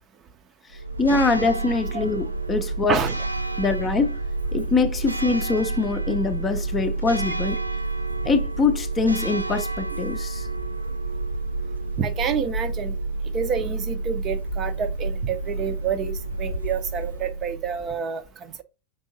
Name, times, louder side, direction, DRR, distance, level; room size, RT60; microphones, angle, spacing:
Church bell, 0.7-18.0, right 2 dB, 85° right, 0.4 m, -29 dB
voice 1, 1.0-3.0 3.6-4.2 4.5-7.6 8.2-10.5, left 4 dB, 20° left, 0.6 m, -23 dB
voice 2, 12.0-13.0 13.3-18.6, right 7 dB, 30° right, 0.6 m, -28 dB
5.3 x 3.5 x 2.7 m
figure-of-eight pair, 90°, 0 cm